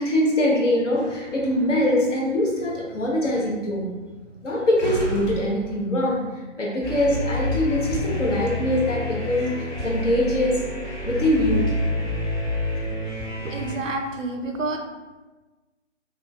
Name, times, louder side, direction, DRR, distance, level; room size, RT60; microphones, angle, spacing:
voice 1, 0.0-3.9 4.4-6.2 6.6-10.6 11.0-11.7, left 1 dB, 75° left, -3 dB, 0.9 m, -23 dB
Slam, 0.8-6.4, right 2 dB, 35° right, 0.4 m, -38 dB
sound 1, 6.8-13.7, left 1 dB, 30° left, 1.1 m, -28 dB
voice 2, 13.4-14.8, right 2 dB, 85° right, 4 dB, 0.5 m, -29 dB
2.5 x 2.3 x 2.3 m, 1.2 s
figure-of-eight pair, 140°, 37 cm